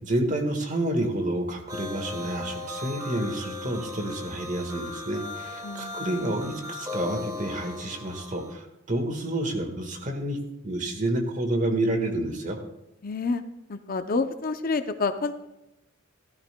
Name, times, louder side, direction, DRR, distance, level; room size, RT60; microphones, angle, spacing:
voice 1, 0.0-10.4 10.6-12.6, right 1 dB, 40° right, 4 dB, 1.5 m, -29 dB
sound 1, 1.7-8.5, left 3 dB, 15° right, 1.1 m, -37 dB
voice 2, 5.6-6.0 13.0-13.4 13.7-15.3, left 4 dB, 45° left, 9 dB, 0.6 m, -28 dB
15.0 x 13.0 x 2.2 m, 0.91 s
head